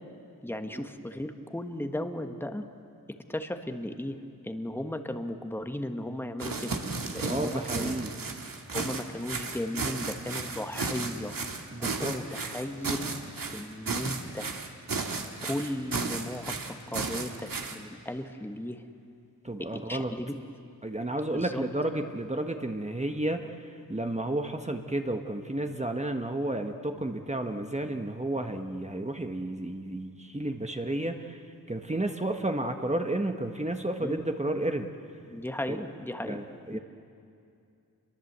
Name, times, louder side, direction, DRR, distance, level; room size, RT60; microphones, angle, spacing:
voice 1, 0.4-2.7 3.3-4.2 4.4-6.8 7.1-7.9 8.7-11.3 11.8-13.1 13.5-14.5 15.4-18.8 19.6-20.4 21.3-21.6 34.0-34.2 35.3-36.4 36.7-36.8, left 1 dB, 5° left, 7 dB, 1.4 m, -35 dB
sound 1, 6.4-17.8, right 4 dB, 70° right, 2.0 m, -34 dB
voice 2, 7.3-8.1 11.7-12.1 19.4-20.1 20.8-23.5 23.9-31.4 31.7-34.9 36.2-36.8, right 1 dB, 20° right, 5 dB, 1.3 m, -32 dB
28.0 x 22.5 x 8.1 m, 2.5 s
wide cardioid pair, 75°, 35 cm